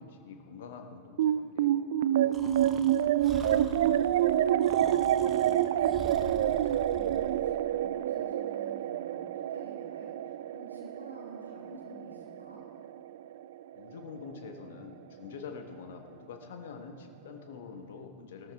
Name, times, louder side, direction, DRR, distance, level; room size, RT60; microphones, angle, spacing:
voice 1, 0.0-2.5 13.7-18.5, left 5 dB, 60° left, 5 dB, 1.3 m, -46 dB
sound 1, 1.2-13.8, right 11 dB, 55° right, 0.3 m, -28 dB
Breathing, 2.3-7.4, right 1 dB, 20° right, 1.1 m, -45 dB
voice 2, 3.3-12.6, equal, 90° left, -4 dB, 2.6 m, -50 dB
16.0 x 13.5 x 3.6 m, 2.3 s
figure-of-eight pair, 90°, 0 cm